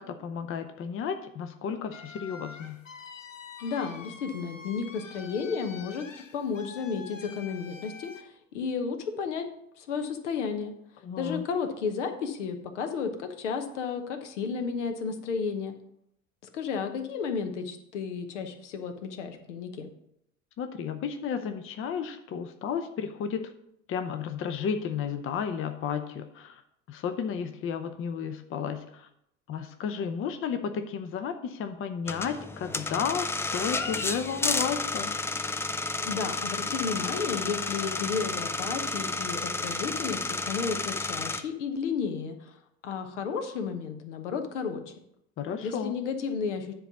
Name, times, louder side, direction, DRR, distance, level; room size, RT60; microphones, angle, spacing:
voice 1, 0.0-2.8 11.0-11.4 20.6-23.5 23.9-26.6 26.9-29.1 29.5-35.1 45.4-45.9, left 7 dB, 35° left, 9 dB, 0.7 m, -33 dB
sound 1, 1.9-8.2, left 5 dB, 85° left, 0.7 m, -46 dB
voice 2, 3.6-6.1 6.3-9.5 9.8-10.7 11.2-15.7 16.5-19.9 36.0-42.6 42.8-44.9 45.6-46.7, left 5 dB, 70° left, 6 dB, 1.1 m, -32 dB
sound 2, 32.1-41.4, left 3 dB, 5° left, 0.3 m, -31 dB
10.0 x 4.0 x 5.9 m, 0.75 s
figure-of-eight pair, 65°, 37 cm